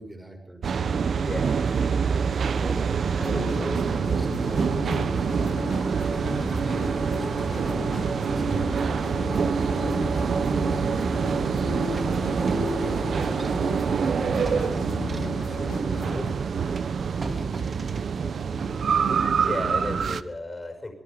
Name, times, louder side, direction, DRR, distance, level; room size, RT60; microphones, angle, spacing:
voice 1, 0.0-1.4 2.0-5.5 6.6-8.9 13.1-17.9 18.2-18.8, right 1 dB, 10° right, 2 dB, 6.7 m, -41 dB
sound 1, 0.6-20.2, right 6 dB, 65° right, 1.0 m, -26 dB
voice 2, 1.2-1.6 19.3-20.9, left 2 dB, 20° left, 6 dB, 5.7 m, -34 dB
sound 2, 3.2-16.3, left 3 dB, 85° left, 5.3 m, -34 dB
sound 3, 10.2-10.3 11.3-11.5 11.9-15.6 16.2-16.3 16.8-18.1, right 2 dB, 40° right, 2.8 m, -39 dB
26.5 x 24.5 x 5.3 m, 0.74 s
wide cardioid pair, 175°, 0 cm